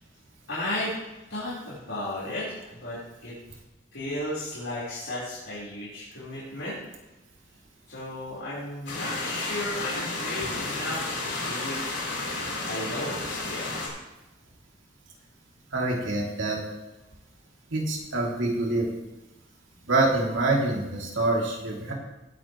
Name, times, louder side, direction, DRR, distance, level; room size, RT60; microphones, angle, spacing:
voice 1, 0.5-0.9 1.3-3.3 3.9-6.8 7.9-11.8 12.7-13.7, left 1 dB, 80° left, -10 dB, 4.3 m, -34 dB
sound 1, 8.9-13.9, left 2 dB, 60° left, 4.1 m, -32 dB
voice 2, 15.7-16.6 17.7-18.9 19.9-21.9, right 2 dB, 85° right, -2 dB, 2.8 m, -26 dB
18.0 x 8.7 x 3.2 m, 1.0 s
head